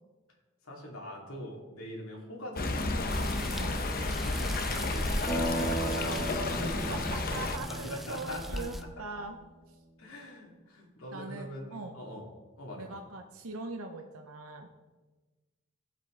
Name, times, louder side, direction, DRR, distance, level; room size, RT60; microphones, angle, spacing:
voice 1, 0.6-3.3 4.1-5.1 5.6-8.6 10.0-12.3 12.6-12.9, left 1 dB, 75° left, -1 dB, 2.4 m, -43 dB
Stream, 2.6-7.6, left 2 dB, 45° left, 0.8 m, -32 dB
sound 1, 3.1-8.8, equal, ahead, 0.5 m, -43 dB
sound 2, 5.3-9.1, right 1 dB, 20° left, 2.2 m, -36 dB
voice 2, 6.9-9.4 9.7-9.8 11.1-12.0 12.8-14.7, right 3 dB, 75° right, 4 dB, 0.8 m, -41 dB
15.0 x 7.6 x 3.8 m, 1.2 s
head